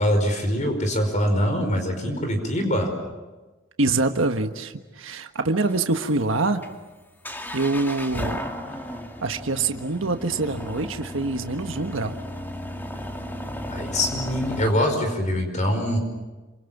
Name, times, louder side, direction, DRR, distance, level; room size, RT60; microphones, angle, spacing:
voice 1, 0.0-2.9 13.7-16.0, equal, 40° left, 5 dB, 5.1 m, -23 dB
voice 2, 3.8-6.6 7.5-8.4 9.2-12.2, right 3 dB, 85° right, 6 dB, 1.4 m, -25 dB
sound 1, 5.6-14.7, equal, 10° left, 2.3 m, -35 dB
28.5 x 26.5 x 7.3 m, 1.2 s
head